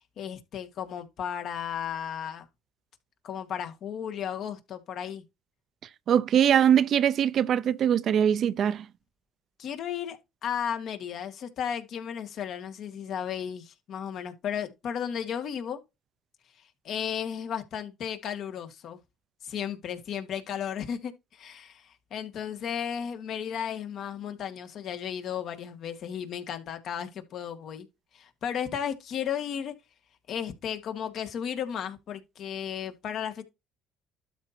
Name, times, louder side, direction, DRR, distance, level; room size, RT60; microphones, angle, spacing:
voice 1, 0.2-2.5 3.2-5.2 9.6-15.8 16.8-19.0 19.4-27.9 28.1-29.7 30.3-33.4, left 8 dB, 60° left, 1.8 m, -34 dB
voice 2, 6.1-8.9, right 9 dB, 55° right, 0.5 m, -22 dB
12.5 x 4.4 x 2.7 m
supercardioid pair, 80°, 0 cm